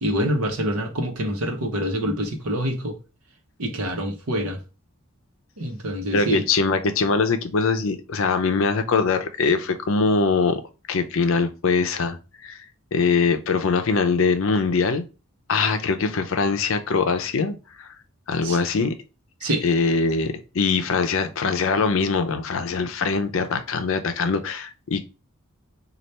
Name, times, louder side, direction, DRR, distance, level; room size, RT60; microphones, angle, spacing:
voice 1, 0.0-3.0 3.6-4.6 5.6-6.4 18.4-18.6 19.4-19.6, equal, 85° right, 0.9 m, -26 dB
voice 2, 6.1-10.6 10.9-12.6 12.9-15.0 15.5-17.9 18.3-19.0 19.6-25.1, left 4 dB, 65° left, 0.5 m, -22 dB
3.3 x 2.4 x 4.1 m
head